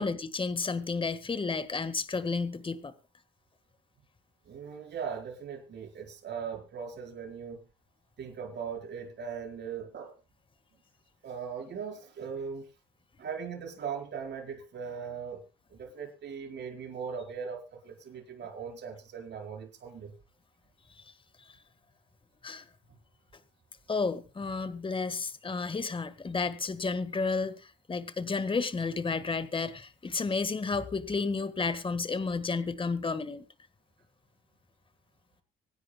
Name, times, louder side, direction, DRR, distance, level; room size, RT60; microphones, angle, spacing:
voice 1, 0.0-2.9 21.0-21.1 21.5-21.6 22.4-22.6 23.9-33.4, left 4 dB, 25° left, 1.6 m, -32 dB
voice 2, 4.5-7.6 8.2-10.1 11.2-12.7 13.2-15.4 15.7-20.1, right 6 dB, 60° right, 4.7 m, -39 dB
25.0 x 10.0 x 2.3 m
cardioid pair, 90°, 20 cm